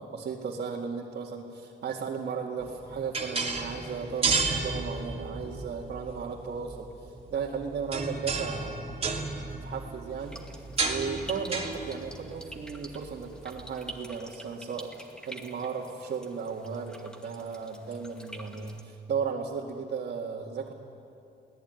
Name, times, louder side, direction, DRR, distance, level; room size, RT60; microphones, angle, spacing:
voice 1, 0.0-9.1 9.6-20.7, right 6 dB, 60° right, -3 dB, 2.2 m, -35 dB
sound 1, 2.6-14.0, right 4 dB, 35° right, 2.9 m, -33 dB
sound 2, 10.2-18.8, right 1 dB, 5° left, 2.1 m, -47 dB
22.0 x 18.0 x 9.3 m, 2.7 s
cardioid pair, 95°, 19 cm